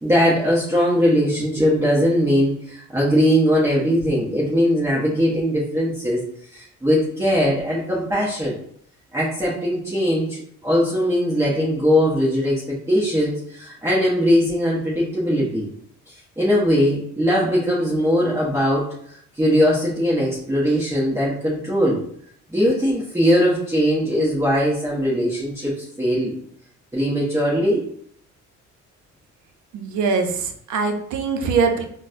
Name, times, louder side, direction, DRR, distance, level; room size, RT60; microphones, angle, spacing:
voice 1, 0.0-6.2 6.5-8.6 9.1-15.7 16.4-18.9 19.4-22.0 22.5-26.3 26.9-27.9, equal, 10° right, -7 dB, 0.9 m, -20 dB
voice 2, 29.7-31.8, right 5 dB, 75° right, 5 dB, 0.6 m, -22 dB
4.0 x 2.2 x 2.5 m, 0.65 s
cardioid pair, 90°, 30 cm